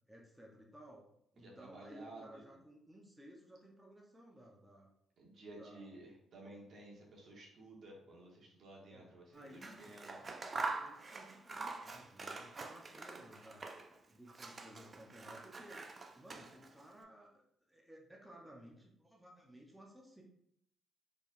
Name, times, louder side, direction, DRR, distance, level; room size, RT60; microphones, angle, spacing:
voice 1, 0.1-1.0 1.3-4.9 5.5-6.0 8.9-13.7 14.1-15.8 16.1-17.4 17.7-20.2, right 1 dB, 5° right, -2 dB, 0.8 m, -57 dB
voice 2, 1.4-2.4 5.2-10.2, right 2 dB, 55° right, -2 dB, 1.3 m, -54 dB
Scissors, 9.5-14.0 14.3-16.8, right 3 dB, 35° right, 0.4 m, -45 dB
4.3 x 3.5 x 2.6 m, 0.73 s
cardioid pair, 90°, 0 cm